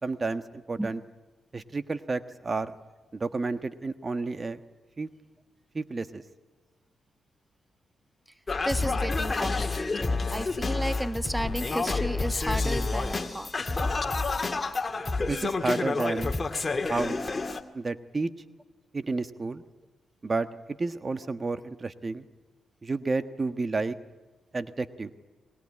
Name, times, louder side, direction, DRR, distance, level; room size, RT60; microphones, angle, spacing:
voice 1, 0.0-1.0 1.5-2.7 3.1-4.6 5.0-5.1 5.7-6.2 15.3-16.3 16.9-17.2 17.7-18.3 18.9-19.6 20.2-22.2 22.8-24.0 24.5-25.1, right 3 dB, 40° right, 10 dB, 1.4 m, -31 dB
Singing, 8.5-17.6, left 3 dB, 35° left, 2.2 m, -29 dB
voice 2, 8.6-13.5, right 1 dB, 5° right, 11 dB, 1.2 m, -33 dB
22.5 x 21.5 x 9.9 m, 1.2 s
supercardioid pair, 50°, 0 cm